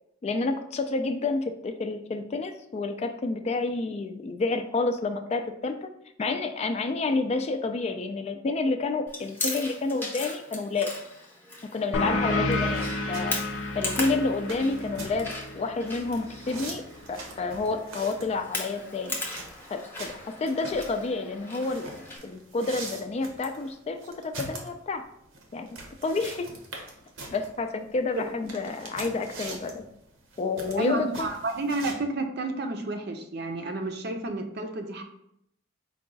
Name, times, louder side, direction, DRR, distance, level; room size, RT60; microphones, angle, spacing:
voice 1, 0.2-5.9 6.2-10.9 11.7-13.4 13.8-16.8 17.1-19.2 19.7-20.1 20.4-21.9 22.2-24.0 24.2-25.0 25.5-26.5 27.3-29.8 30.4-31.3, left 3 dB, 30° left, 7 dB, 0.3 m, -29 dB
Chewing mastication, 9.1-22.2, left 2 dB, 10° left, 0.7 m, -38 dB
sound 1, 11.9-17.1, left 2 dB, 90° left, 0.5 m, -31 dB
sound 2, 12.5-31.9, right 2 dB, 80° right, 0.8 m, -43 dB
voice 2, 30.8-35.0, right 2 dB, 55° right, 5 dB, 0.6 m, -31 dB
4.7 x 2.3 x 3.9 m, 0.76 s
head